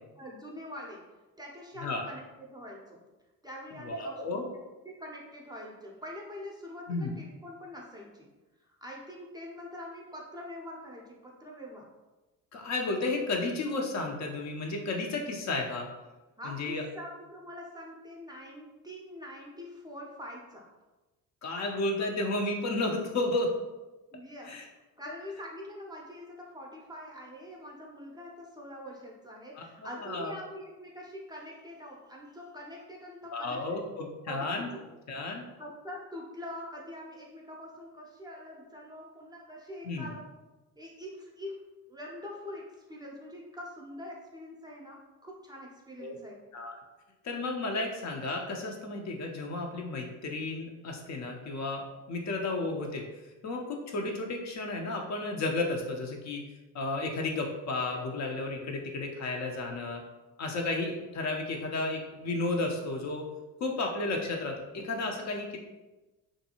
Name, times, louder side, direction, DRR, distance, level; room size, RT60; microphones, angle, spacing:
voice 1, 0.2-1.1 1.4-3.0 3.4-4.5 4.8-8.3 8.8-11.9 16.4-20.7 24.1-33.8 34.3-34.7 35.6-40.3 40.8-41.6 41.9-46.4, left 1 dB, 10° right, -2 dB, 0.5 m, -44 dB
voice 2, 3.8-4.4 6.9-7.1 12.5-15.9 16.4-16.8 21.4-23.5 24.4-24.7 29.6-30.3 33.3-34.7 35.1-35.4 39.8-40.1 46.0-46.2 46.5-46.8 47.2-53.0 53.4-56.4 56.7-60.0 60.4-63.3 63.6-65.6, left 2 dB, 40° left, 1 dB, 0.5 m, -33 dB
2.6 x 2.2 x 2.8 m, 1.1 s
hypercardioid pair, 55°, 43 cm